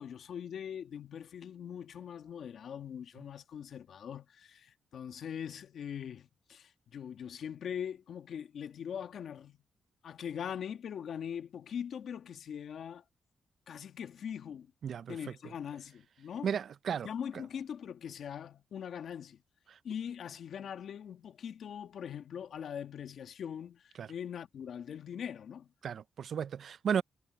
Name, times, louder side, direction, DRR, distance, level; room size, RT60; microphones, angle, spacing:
voice 1, 0.0-9.6 10.0-13.0 13.7-14.7 15.1-16.5 17.0-19.4 19.8-25.7, left 8 dB, 75° left, 1.8 m, -42 dB
voice 2, 14.8-15.2 16.4-17.1 24.0-24.1 25.8-27.0, right 7 dB, 70° right, 0.5 m, -33 dB
cardioid pair, 60°, 0 cm